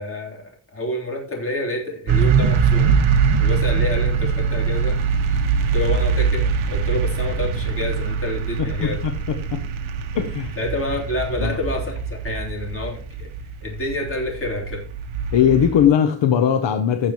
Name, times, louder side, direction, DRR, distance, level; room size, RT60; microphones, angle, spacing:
voice 1, 0.0-3.0 3.4-5.0 5.7-9.0 10.6-13.3 13.6-14.8, left 2 dB, 25° left, 3.6 m, -28 dB
sound 1, 2.1-15.9, right 6 dB, 75° right, 1.2 m, -22 dB
voice 2, 8.6-9.6 10.1-10.6 11.4-11.6 15.3-17.1, left 9 dB, 60° left, 0.9 m, -19 dB
16.5 x 6.7 x 3.1 m
wide cardioid pair, 165°, 49 cm